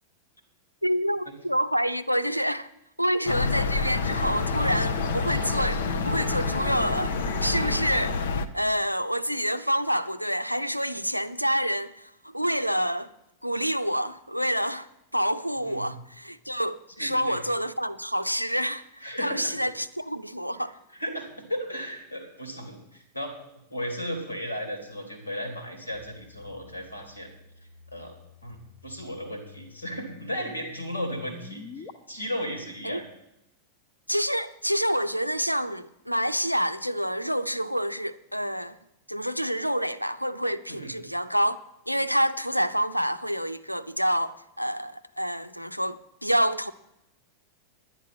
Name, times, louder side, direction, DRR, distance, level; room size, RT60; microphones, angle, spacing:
voice 1, 0.8-2.7 3.0-8.2 8.5-13.1 13.4-18.8 19.2-20.8 32.8-33.0 34.1-38.8 39.1-41.6 41.9-46.7, equal, 90° right, 0.5 m, -27 dB
sound 1, 3.3-8.5, left 4 dB, 60° left, 0.7 m, -28 dB
sound 2, 3.9-8.6, equal, ahead, 1.1 m, -41 dB
voice 2, 15.5-15.9 17.0-17.4 19.0-19.5 20.9-23.4 23.7-27.3 27.9-33.0 40.7-40.9, equal, 85° left, 2.9 m, -35 dB
sound 3, 25.9-31.9, left 5 dB, 35° left, 1.1 m, -48 dB
10.5 x 10.5 x 5.9 m
figure-of-eight pair, 90°, 0 cm